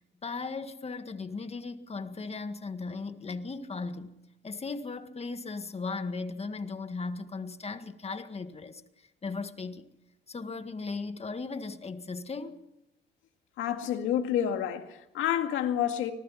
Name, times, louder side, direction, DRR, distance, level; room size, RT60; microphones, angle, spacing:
voice 1, 0.0-4.1 4.4-9.9 10.3-12.6, left 4 dB, 30° left, 1.8 m, -37 dB
voice 2, 13.6-16.1, left 10 dB, 90° left, 2.1 m, -29 dB
25.5 x 19.5 x 5.8 m
cardioid pair, 90°, 20 cm